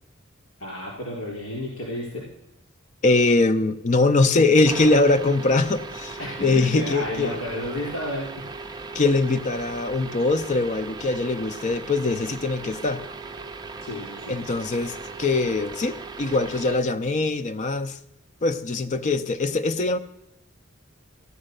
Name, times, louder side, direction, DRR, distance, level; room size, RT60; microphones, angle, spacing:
voice 1, 0.6-2.2 6.2-6.3 6.5-8.5 13.8-14.4, left 1 dB, 85° left, 3.9 m, -32 dB
voice 2, 3.0-7.4 8.9-13.0 14.3-18.0 18.4-20.0, left 3 dB, 40° left, 0.5 m, -22 dB
sound 1, 4.6-16.8, right 3 dB, 20° right, 0.7 m, -38 dB
15.0 x 10.0 x 6.5 m
head